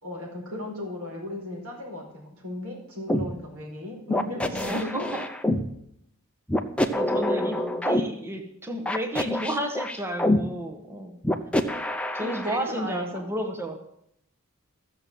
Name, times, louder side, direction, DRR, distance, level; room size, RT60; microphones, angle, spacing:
voice 1, 0.0-5.1 7.4-7.9 12.2-13.2, left 1 dB, 85° right, -1 dB, 4.8 m, -36 dB
sound 1, 3.1-3.3 4.1-5.6 6.5-8.0 8.9-10.4 11.2-12.6, left 1 dB, 5° left, 0.6 m, -25 dB
voice 2, 4.4-5.2 6.9-7.6 7.8-11.2 12.1-13.8, right 1 dB, 10° right, 3 dB, 1.1 m, -32 dB
13.5 x 6.8 x 7.7 m, 0.75 s
head